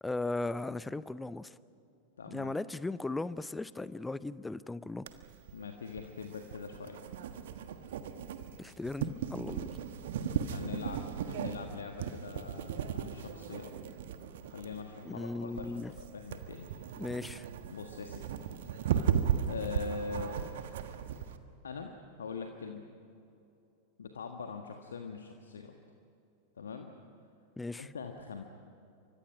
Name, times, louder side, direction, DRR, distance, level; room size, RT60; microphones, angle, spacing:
voice 1, 0.0-1.6 2.3-5.1 8.6-9.7 15.0-15.9 17.0-17.5 27.6-27.9, left 2 dB, 10° left, 17 dB, 0.7 m, -37 dB
voice 2, 2.2-2.5 5.5-7.0 10.4-13.7 14.5-16.7 17.7-18.3 19.4-20.7 21.6-22.9 24.0-25.7 26.6-26.9 27.8-28.4, left 5 dB, 70° left, 4 dB, 1.5 m, -42 dB
sound 1, 5.1-21.4, right 8 dB, 55° right, 1.5 m, -36 dB
29.0 x 24.5 x 6.0 m, 2.7 s
figure-of-eight pair, 90°, 0 cm